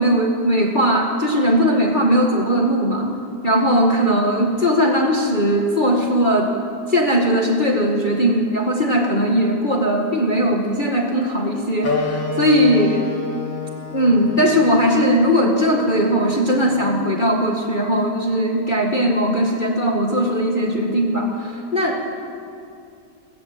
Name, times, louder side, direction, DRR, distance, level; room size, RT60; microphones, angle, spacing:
voice 1, 0.0-3.1 3.4-6.5 6.9-13.0 13.9-22.1, equal, 25° left, 0 dB, 2.1 m, -19 dB
Wind instrument woodwind instrument, 11.8-16.9, left 3 dB, 85° left, 4.7 m, -29 dB
25.5 x 21.0 x 7.9 m, 2.5 s
omnidirectional pair, 2.0 m